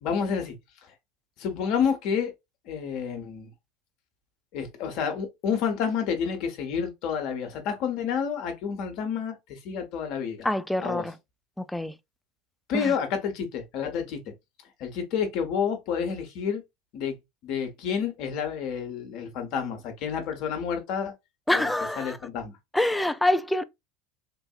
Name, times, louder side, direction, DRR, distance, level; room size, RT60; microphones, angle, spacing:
voice 1, 0.0-0.5 1.4-2.3 2.7-3.5 4.5-10.5 10.8-11.1 12.7-14.3 14.8-16.6 16.9-17.1 17.4-21.1 21.5-21.7 22.0-22.5, left 7 dB, 55° left, 1.1 m, -29 dB
voice 2, 10.4-11.1 11.7-11.9 12.7-12.9 21.5-22.2 22.7-23.6, left 1 dB, 5° left, 0.4 m, -25 dB
3.9 x 2.6 x 2.4 m
figure-of-eight pair, 75°, 0 cm